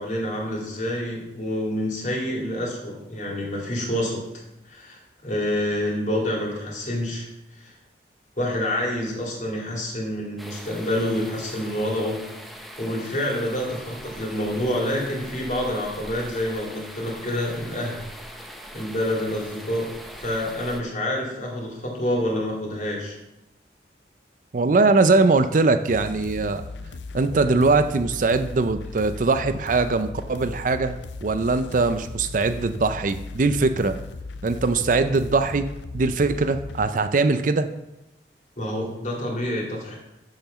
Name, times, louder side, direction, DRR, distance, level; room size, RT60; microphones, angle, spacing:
voice 1, 0.0-4.2 4.6-7.7 8.4-12.2 12.8-18.0 18.7-19.9 20.2-23.2 38.6-39.9, left 1 dB, 45° left, -2 dB, 2.6 m, -27 dB
sound 1, 10.4-20.8, equal, ahead, 0.8 m, -41 dB
voice 2, 24.5-26.6 27.1-34.0 34.4-35.7 35.9-37.7, right 3 dB, 45° right, 10 dB, 0.5 m, -21 dB
sound 2, 25.9-36.9, left 3 dB, 75° left, 0.5 m, -37 dB
7.1 x 5.8 x 6.9 m, 0.92 s
head